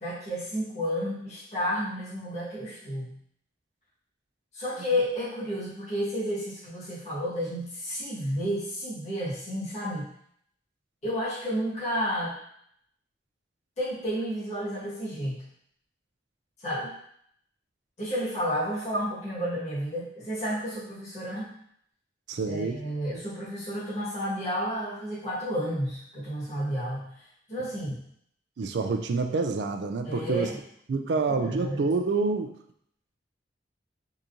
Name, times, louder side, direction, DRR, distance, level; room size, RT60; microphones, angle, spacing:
voice 1, 0.0-3.1 4.5-10.1 11.0-12.4 13.8-15.4 16.6-16.9 18.0-21.5 22.4-27.1 27.5-28.0 30.0-30.6 31.1-31.8, equal, 40° left, -11 dB, 1.5 m, -31 dB
voice 2, 22.3-22.8 28.6-30.5 30.9-32.5, right 4 dB, 70° right, 6 dB, 0.4 m, -27 dB
3.6 x 2.9 x 2.6 m, 0.68 s
head